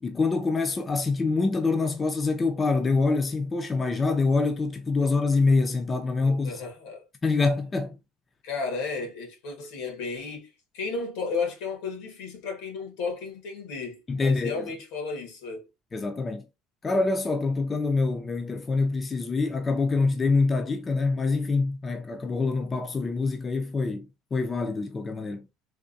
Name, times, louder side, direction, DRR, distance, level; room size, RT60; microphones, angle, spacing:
voice 1, 0.0-6.6 7.2-8.0 14.1-14.7 15.9-16.5 16.8-25.5, left 3 dB, 20° left, 0.5 m, -25 dB
voice 2, 6.2-7.0 8.4-15.7, left 4 dB, 85° left, 1.6 m, -33 dB
3.5 x 2.9 x 2.6 m
cardioid pair, 145°, 0 cm